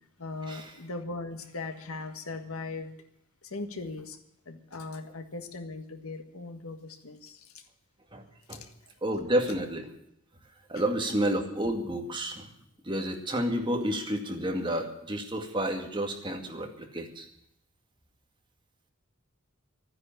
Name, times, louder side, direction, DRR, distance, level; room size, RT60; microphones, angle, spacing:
voice 1, 0.2-2.9 3.4-4.2 4.4-7.6 8.5-8.9 10.7-10.8, left 3 dB, 80° left, 1.7 m, -39 dB
voice 2, 8.1-8.6 9.0-9.8 10.7-12.5 12.8-17.3, right 1 dB, 25° right, 2.2 m, -30 dB
13.5 x 9.9 x 9.5 m
head